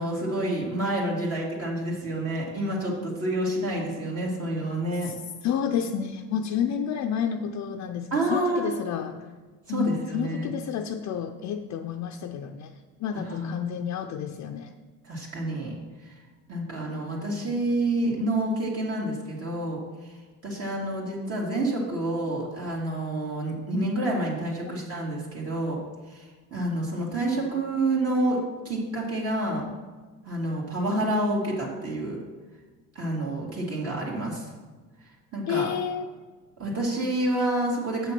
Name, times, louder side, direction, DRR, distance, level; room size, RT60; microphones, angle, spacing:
voice 1, 0.0-5.1 8.1-8.7 9.7-10.5 13.1-13.5 15.0-16.2 16.5-20.2 20.4-25.8 26.1-28.4 28.6-29.6 30.2-32.2 32.9-34.5 35.0-35.8 36.6-38.1, right 1 dB, 45° right, -4 dB, 2.3 m, -28 dB
voice 2, 5.4-9.2 9.7-12.7 13.0-14.7 24.6-24.8 35.5-36.1, left 8 dB, 55° left, 4 dB, 0.6 m, -30 dB
7.2 x 6.1 x 5.9 m, 1.3 s
cardioid pair, 105°, 34 cm